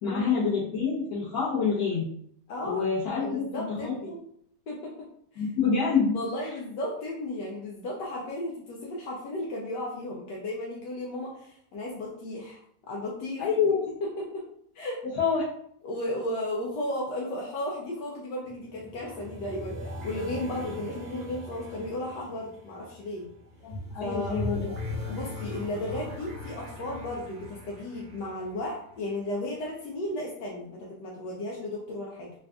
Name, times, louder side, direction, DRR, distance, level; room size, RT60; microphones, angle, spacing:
voice 1, 0.0-2.1 2.6-3.9 5.4-6.2 13.4-13.8 15.2-15.4 23.6-24.7, left 5 dB, 60° left, -10 dB, 1.5 m, -27 dB
voice 2, 2.5-2.8 3.2-4.1 4.7-5.1 5.3-5.5 6.1-12.6 12.9-13.4 14.0-14.4 14.7-15.0 15.8-23.3 24.0-24.4 25.1-32.3, left 1 dB, 80° left, -3 dB, 1.3 m, -34 dB
sound 1, 18.5-29.2, left 2 dB, 35° right, 0.7 m, -39 dB
3.9 x 2.4 x 3.4 m, 0.67 s
omnidirectional pair, 1.8 m